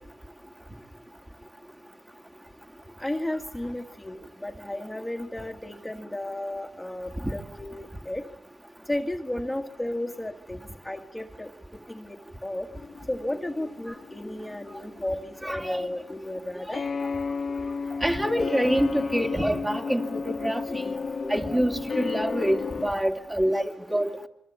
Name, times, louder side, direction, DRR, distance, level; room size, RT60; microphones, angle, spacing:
voice 1, 3.0-8.2 8.9-11.5 11.9-12.7 13.1-16.8 23.5-23.6, left 1 dB, 10° left, 1.8 m, -33 dB
sound 1, 12.7-22.9, left 5 dB, 45° left, 1.5 m, -33 dB
voice 2, 15.4-15.8 18.0-20.9 21.2-24.3, equal, 15° right, 2.7 m, -26 dB
27.5 x 23.0 x 8.7 m
supercardioid pair, 60°, 0 cm